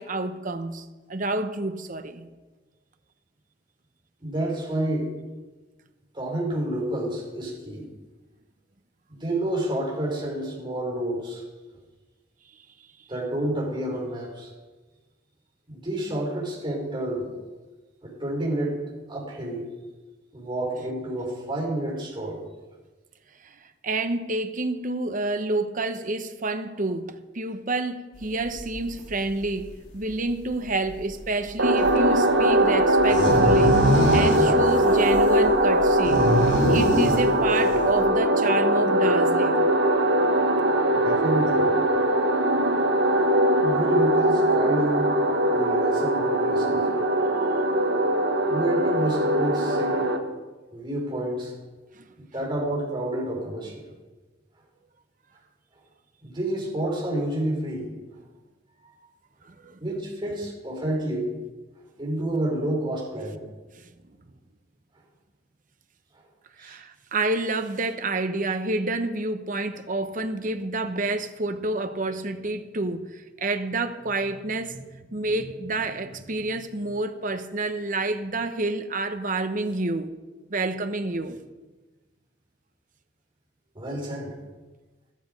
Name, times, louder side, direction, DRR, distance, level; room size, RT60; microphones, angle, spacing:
voice 1, 0.0-2.3 23.4-23.5 23.8-33.8 34.1-36.2 36.7-39.7 51.9-52.1 59.4-59.8 63.7-63.8 66.6-80.2 80.5-81.4, right 2 dB, 45° right, 0.9 m, -29 dB
voice 2, 4.2-5.1 6.1-7.8 9.1-11.4 13.1-14.5 15.7-17.3 18.0-18.8 19.1-19.6 20.3-22.4 40.9-41.7 43.6-45.1 45.5-46.8 48.5-50.1 50.7-51.5 52.2-53.9 56.2-57.9 58.8-58.9 59.8-61.3 62.0-63.4 66.6-66.8 83.7-84.3, right 1 dB, 25° right, 4.8 m, -29 dB
sound 1, 28.4-28.6 28.9-29.0 29.4-29.5 30.0-30.1 30.5-30.6 30.8-31.1 31.8-31.9 32.4-32.5 32.8-38.0, equal, 75° left, 4.2 m, -25 dB
sound 2, 31.6-50.2, right 1 dB, 75° right, 1.4 m, -21 dB
14.0 x 13.0 x 5.3 m
head